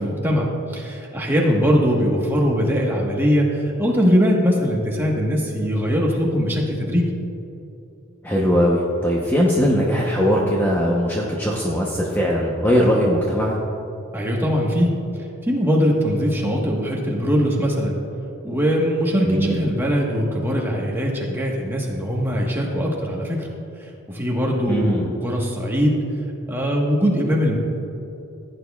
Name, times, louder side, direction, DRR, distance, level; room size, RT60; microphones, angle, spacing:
voice 1, 0.0-7.1 14.1-14.9 15.4-18.0 18.4-23.5 24.1-26.0 26.5-27.6, equal, 10° right, -2 dB, 1.2 m, -21 dB
voice 2, 8.2-13.6 19.2-19.6 24.7-25.1, equal, 10° left, -3 dB, 0.8 m, -20 dB
15.5 x 9.1 x 2.3 m, 2.8 s
head